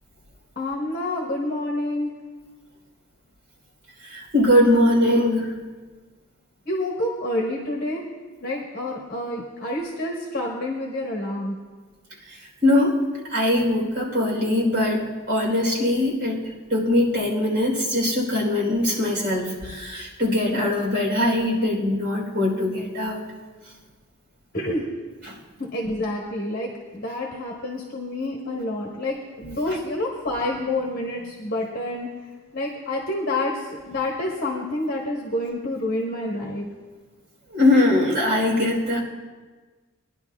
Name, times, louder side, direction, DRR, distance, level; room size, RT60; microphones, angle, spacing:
voice 1, 0.6-2.1 6.6-8.0 8.4-11.6 24.5-24.8 25.7-32.1 32.5-36.7, left 1 dB, 45° left, -2 dB, 1.3 m, -28 dB
voice 2, 4.0-5.5 12.6-12.9 13.2-23.2 25.2-25.3 29.7-29.8 37.5-39.0, left 1 dB, 60° right, -3 dB, 3.7 m, -21 dB
22.0 x 11.0 x 2.4 m, 1.4 s
head